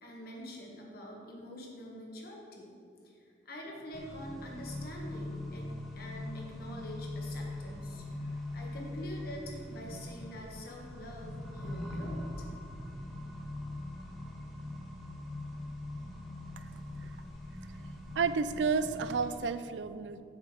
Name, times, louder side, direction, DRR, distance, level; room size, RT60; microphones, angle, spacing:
voice 1, 0.0-2.8 3.0-5.7 5.9-12.4, equal, 60° left, -1 dB, 1.5 m, -45 dB
Accelerating revving vroom, 3.9-19.3, left 1 dB, ahead, 1.2 m, -42 dB
voice 2, 18.2-20.2, right 5 dB, 80° right, 12 dB, 0.4 m, -31 dB
7.3 x 4.8 x 6.5 m, 2.3 s
head